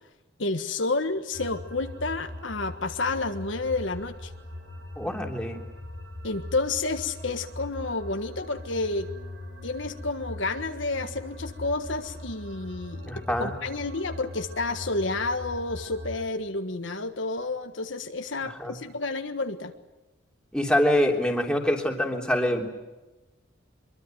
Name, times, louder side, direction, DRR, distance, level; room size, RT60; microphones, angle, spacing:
voice 1, 0.4-4.3 6.2-9.1 9.6-19.7, left 3 dB, 70° left, 7 dB, 1.5 m, -30 dB
sound 1, 1.3-16.3, left 1 dB, 60° right, 3.0 m, -41 dB
voice 2, 5.0-5.6 13.1-13.5 18.6-18.7 20.5-22.7, left 1 dB, 5° left, 1 dB, 3.2 m, -25 dB
24.0 x 22.5 x 9.2 m, 1.1 s
head